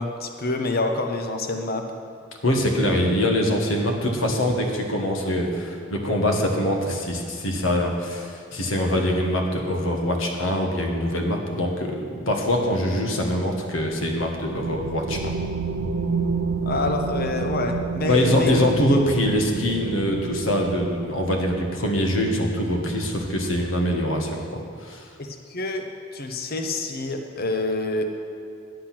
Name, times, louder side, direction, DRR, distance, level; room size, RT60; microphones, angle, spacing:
voice 1, 0.0-1.8 16.6-18.5 25.2-25.9 26.1-28.0, left 2 dB, 50° left, 4 dB, 0.9 m, -27 dB
voice 2, 2.4-15.3 18.1-25.1, left 1 dB, 85° left, 2 dB, 1.6 m, -23 dB
sound 1, 13.8-23.8, right 5 dB, 75° right, 0.6 m, -31 dB
10.5 x 8.1 x 6.0 m, 2.3 s
head